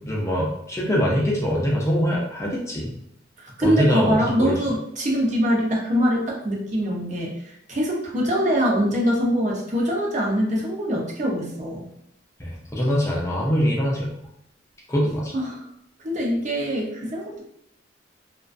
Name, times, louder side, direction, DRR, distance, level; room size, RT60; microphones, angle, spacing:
voice 1, 0.0-2.9 3.6-4.5 12.4-14.1 14.9-15.3, equal, 15° left, -4 dB, 0.4 m, -23 dB
voice 2, 3.4-11.9 15.3-15.6 16.0-17.4, equal, 40° right, -2 dB, 0.6 m, -23 dB
2.3 x 2.2 x 2.4 m, 0.75 s
head